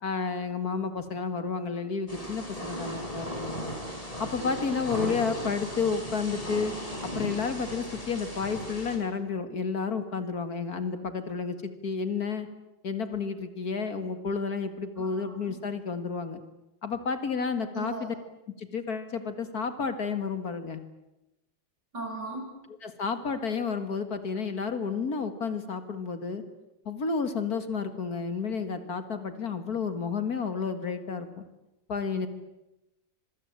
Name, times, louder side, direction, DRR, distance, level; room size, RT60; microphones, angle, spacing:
voice 1, 0.0-3.7 4.2-6.7 7.0-12.5 12.8-16.4 16.8-18.1 18.6-20.8 22.8-26.4 26.9-31.5 31.9-32.3, left 5 dB, 55° left, 10 dB, 2.3 m, -31 dB
Thunder / Rain, 2.1-9.0, equal, 20° left, 5.5 m, -36 dB
voice 2, 15.0-15.3 17.7-18.1 21.9-22.5, right 3 dB, 65° right, 0 dB, 8.6 m, -37 dB
26.0 x 23.0 x 8.9 m, 0.95 s
omnidirectional pair, 2.0 m